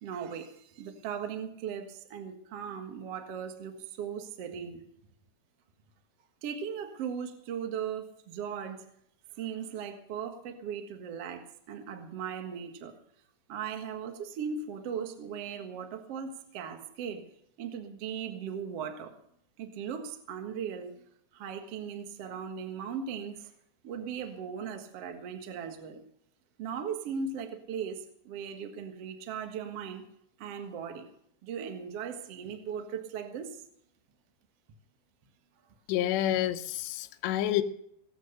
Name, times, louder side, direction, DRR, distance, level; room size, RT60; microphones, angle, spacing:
voice 1, 0.0-4.8 6.4-8.8 9.4-12.9 13.5-17.2 17.6-19.1 19.6-21.0 21.3-23.5 23.8-26.0 26.6-30.0 30.4-31.1 31.4-33.6, right 7 dB, 80° right, 6 dB, 1.3 m, -38 dB
voice 2, 35.9-37.6, left 12 dB, 75° left, 5 dB, 2.9 m, -28 dB
18.0 x 8.3 x 6.6 m, 0.70 s
omnidirectional pair, 5.4 m